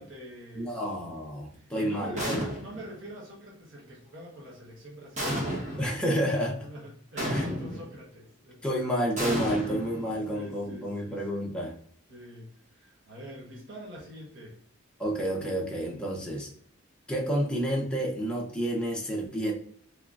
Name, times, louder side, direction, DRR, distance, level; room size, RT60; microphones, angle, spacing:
voice 1, 0.0-0.8 1.5-5.8 6.5-8.6 10.3-11.2 12.1-14.6, equal, 65° right, -3 dB, 1.0 m, -45 dB
voice 2, 0.6-2.4 5.8-6.7 7.3-7.5 8.6-11.7 15.0-16.5 17.1-19.5, equal, 5° left, -2 dB, 0.6 m, -30 dB
sound 1, 2.2-2.9 5.2-6.0 7.2-7.9 9.2-10.4, equal, 35° right, 1.0 m, -32 dB
3.7 x 3.0 x 2.4 m, 0.62 s
head